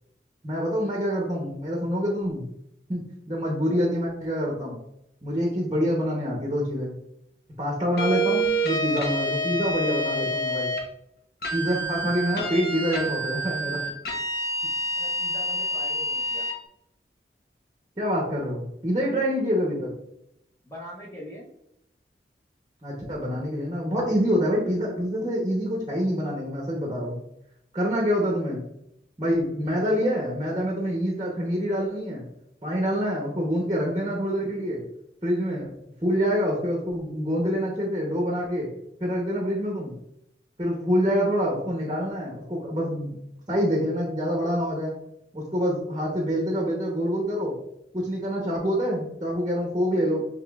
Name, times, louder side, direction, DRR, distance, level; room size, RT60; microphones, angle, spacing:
voice 1, 0.4-2.5 2.9-4.8 5.2-6.9 7.6-10.7 11.5-13.8 18.0-19.9 22.8-27.2 27.7-28.6 29.2-32.2 32.6-34.8 35.2-35.7 36.0-38.7 39.0-39.9 40.6-43.2 43.5-44.9 45.3-47.5 47.9-50.2, equal, 25° right, -2 dB, 0.8 m, -26 dB
sound 1, 8.0-10.8 11.4-16.6, right 1 dB, 60° left, 0.8 m, -28 dB
voice 2, 14.9-16.5 20.6-21.5 50.1-50.3, left 1 dB, 15° left, -4 dB, 0.7 m, -42 dB
5.8 x 3.2 x 2.3 m, 0.79 s
head